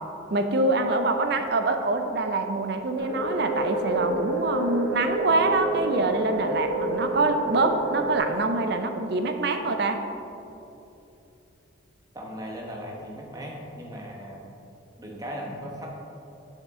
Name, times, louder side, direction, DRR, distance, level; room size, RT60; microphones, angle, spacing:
voice 1, 0.3-10.0, right 2 dB, 55° right, 7 dB, 0.5 m, -25 dB
sound 1, 3.0-8.2, right 1 dB, 15° left, 1.7 m, -29 dB
voice 2, 12.1-14.4 15.0-15.9, equal, 20° right, -2 dB, 1.0 m, -37 dB
7.4 x 6.5 x 3.7 m, 2.9 s
head